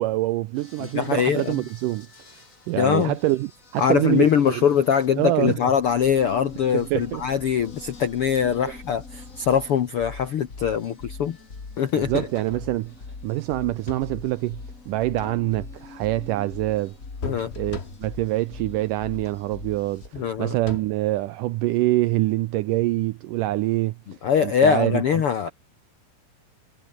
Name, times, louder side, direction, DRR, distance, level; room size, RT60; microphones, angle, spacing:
voice 1, 0.0-2.1 2.7-4.6 5.2-5.6 6.7-7.2 8.6-8.7 11.9-12.9 13.2-17.0 17.6-24.0 24.4-25.0, right 17 dB, 85° right, 1.9 m, -25 dB
sound 1, 0.5-20.1, left 4 dB, 25° left, 2.5 m, -43 dB
voice 2, 0.8-1.6 2.8-3.1 3.8-11.4 11.8-12.3 17.2-17.5 20.1-20.6 24.2-25.5, left 8 dB, 70° left, 1.3 m, -22 dB
sound 2, 11.9-12.7 13.6-14.2 15.0-15.8 17.2-18.3 19.1-19.5 20.1-21.1 22.8-23.0, left 4 dB, 45° left, 0.8 m, -39 dB
omnidirectional pair, 4.3 m